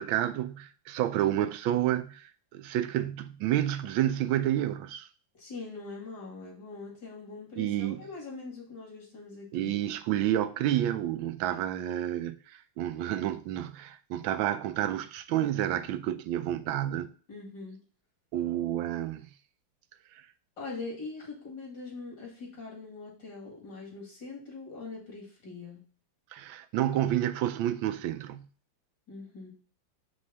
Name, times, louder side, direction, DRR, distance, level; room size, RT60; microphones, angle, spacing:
voice 1, 0.0-5.1 7.6-8.0 9.5-12.4 12.8-17.1 18.3-19.2 26.3-28.5, right 12 dB, 90° right, 1.4 m, -29 dB
voice 2, 5.3-9.7 17.3-17.8 20.6-25.8 29.1-29.5, left 3 dB, 60° left, 2.7 m, -42 dB
5.4 x 3.2 x 5.6 m
omnidirectional pair, 2.1 m